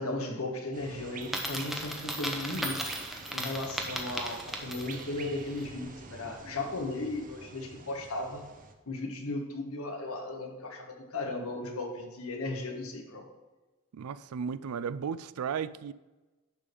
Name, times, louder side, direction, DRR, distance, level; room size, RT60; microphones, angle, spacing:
voice 1, 0.0-2.8 3.3-8.4 8.9-13.2, left 2 dB, 80° left, 1.4 m, -36 dB
sound 1, 0.7-8.7, right 4 dB, 40° right, 0.7 m, -47 dB
Coin (dropping), 1.2-5.1, equal, ahead, 0.8 m, -36 dB
voice 2, 13.9-15.9, right 6 dB, 85° right, 0.4 m, -35 dB
10.5 x 3.5 x 6.8 m
head